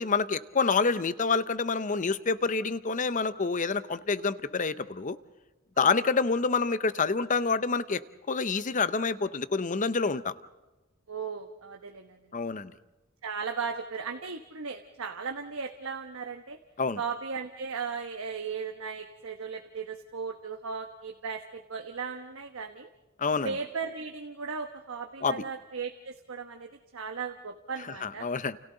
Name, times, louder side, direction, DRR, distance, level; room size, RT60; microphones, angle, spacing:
voice 1, 0.0-5.2 5.8-8.0 8.3-10.3 12.3-12.7 16.8-17.0 23.2-23.5 25.2-25.4 27.9-28.6, left 4 dB, 35° left, 14 dB, 0.7 m, -27 dB
voice 2, 5.8-6.1 11.1-12.2 13.2-16.6 17.0-22.9 23.4-28.3, right 5 dB, 75° right, 5 dB, 1.1 m, -37 dB
29.5 x 29.0 x 3.9 m, 1.1 s
head